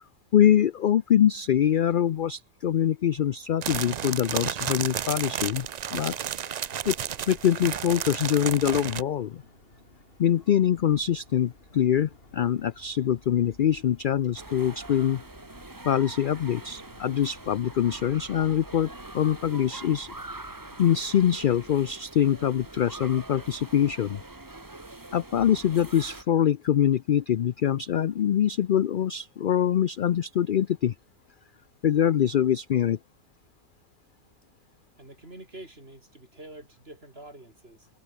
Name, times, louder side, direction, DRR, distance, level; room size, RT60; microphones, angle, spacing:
voice 1, 0.3-5.7 5.9-6.1 6.9-7.0 7.3-9.4 10.2-15.2 15.8-20.1 20.8-24.2 25.1-30.9 31.8-33.0, left 10 dB, 65° left, 0.5 m, -24 dB
sound 1, 3.6-9.0, right 8 dB, 70° right, 0.4 m, -32 dB
sound 2, 6.7-21.3, left 2 dB, 40° left, 4.3 m, -55 dB
sound 3, 14.3-26.2, right 2 dB, 15° right, 1.3 m, -44 dB
voice 2, 35.0-37.9, right 1 dB, 45° right, 6.6 m, -46 dB
open air
omnidirectional pair, 1.5 m